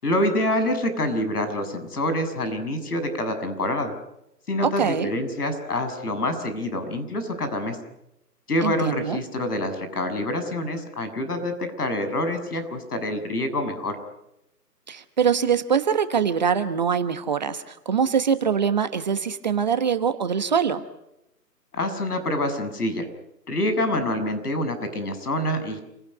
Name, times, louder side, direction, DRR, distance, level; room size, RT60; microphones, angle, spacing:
voice 1, 0.0-3.9 4.5-7.8 8.5-14.0 21.7-23.1 23.5-25.9, left 1 dB, 65° left, 10 dB, 7.0 m, -26 dB
voice 2, 4.6-5.1 8.6-9.2 14.9-20.8, right 7 dB, 25° right, 10 dB, 1.1 m, -23 dB
28.0 x 17.5 x 9.7 m, 0.85 s
figure-of-eight pair, 155°, 49 cm